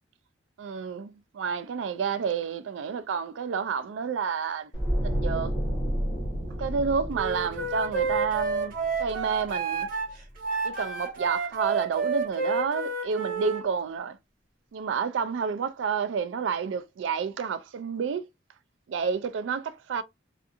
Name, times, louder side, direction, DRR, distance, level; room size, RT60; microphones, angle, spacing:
voice 1, 0.6-4.7 5.0-5.5 6.6-9.9 10.6-14.2 14.7-18.3 18.9-20.0, right 6 dB, 70° right, 0.3 m, -30 dB
sound 1, 4.7-9.8 10.1-10.3, equal, 25° left, 1.1 m, -31 dB
Wind instrument woodwind instrument, 7.1-13.6, right 4 dB, 50° right, 1.1 m, -30 dB
2.5 x 2.5 x 2.5 m
head